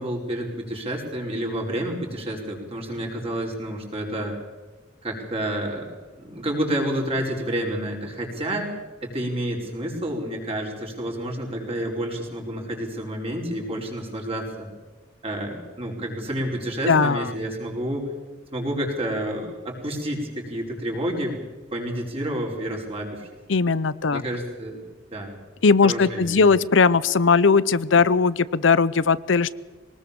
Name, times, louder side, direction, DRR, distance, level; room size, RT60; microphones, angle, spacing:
voice 1, 0.0-4.3 5.0-8.7 9.0-14.7 15.2-18.1 18.5-21.4 21.7-23.3 24.1-25.4 25.8-26.5, right 1 dB, 30° right, 0 dB, 5.2 m, -29 dB
voice 2, 16.9-17.3 23.5-24.2 25.6-29.5, left 4 dB, 85° left, 17 dB, 0.7 m, -19 dB
23.0 x 19.5 x 7.0 m, 1.3 s
head